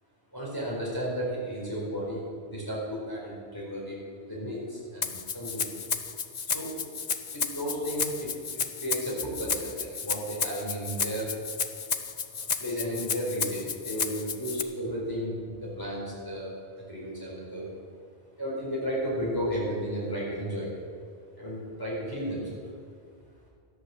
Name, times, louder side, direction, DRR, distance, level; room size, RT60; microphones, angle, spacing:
voice 1, 0.3-2.2 2.5-5.7 6.5-6.7 7.3-11.3 12.3-16.5 16.8-17.7 18.4-20.7 21.4-22.6, equal, 20° left, -7 dB, 4.6 m, -33 dB
Rattle (instrument), 5.0-14.6, left 6 dB, 45° left, 0.7 m, -32 dB
13.5 x 10.0 x 7.3 m, 2.1 s
omnidirectional pair, 1.1 m